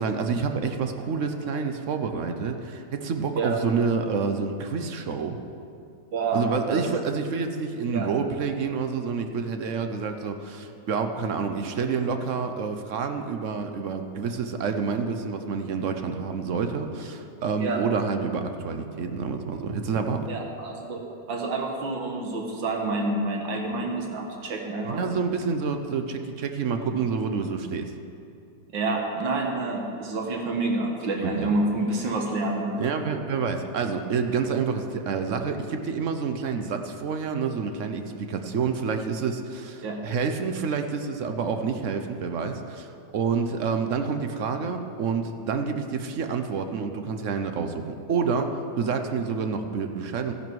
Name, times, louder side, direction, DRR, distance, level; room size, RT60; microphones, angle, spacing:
voice 1, 0.0-5.4 6.3-20.3 24.8-27.9 31.2-31.5 32.8-50.3, right 5 dB, 60° right, 6 dB, 0.8 m, -28 dB
voice 2, 6.1-6.4 6.7-6.8 7.9-8.1 17.6-17.8 20.3-21.0 21.3-25.0 28.7-32.8 39.8-40.0, right 2 dB, 80° right, 1 dB, 2.1 m, -28 dB
14.0 x 10.5 x 4.6 m, 2.6 s
omnidirectional pair, 2.0 m